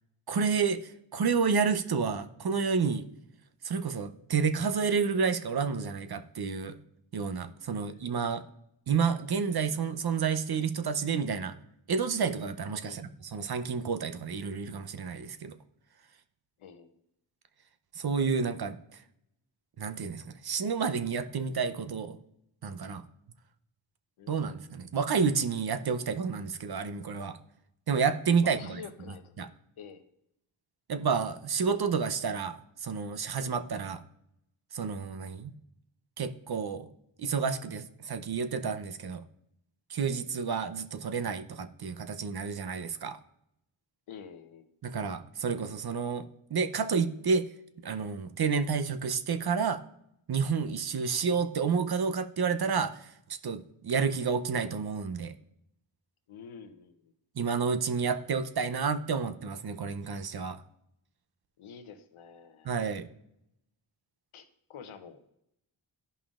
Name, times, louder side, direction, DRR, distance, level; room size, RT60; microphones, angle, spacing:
voice 1, 0.3-3.0 3.6-6.8 7.1-8.4 8.9-11.5 11.9-15.5 18.0-18.7 19.8-22.2 22.6-23.0 24.3-27.4 27.9-28.8 29.4-29.5 30.9-32.6 32.8-34.0 34.7-35.5 36.2-36.9 37.2-39.2 39.9-43.2 44.8-46.2 46.5-47.4 47.8-49.8 50.3-53.0 53.4-55.3 57.4-60.6 62.6-63.1, right 5 dB, 50° right, 9 dB, 0.7 m, -30 dB
voice 2, 7.7-8.1 12.8-13.1 16.6-17.0 24.2-24.5 28.4-30.0 44.1-44.7 56.3-57.1 61.6-62.7 64.3-65.2, left 6 dB, 80° left, 9 dB, 0.9 m, -48 dB
12.5 x 5.4 x 2.5 m, 0.78 s
cardioid pair, 45°, 49 cm